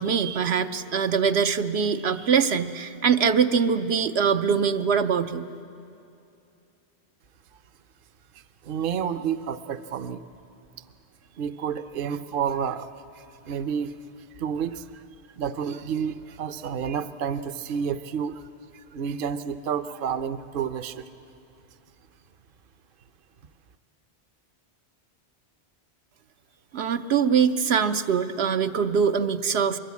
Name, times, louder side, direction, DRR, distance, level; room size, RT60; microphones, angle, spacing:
voice 1, 0.0-5.5 26.7-29.8, right 6 dB, 80° right, 8 dB, 1.0 m, -23 dB
voice 2, 8.6-10.3 11.4-12.9 13.5-14.0 14.4-15.0 15.3-18.5 18.9-21.1, right 7 dB, 60° right, 11 dB, 0.9 m, -30 dB
23.0 x 21.5 x 8.4 m, 2.6 s
omnidirectional pair, 1.1 m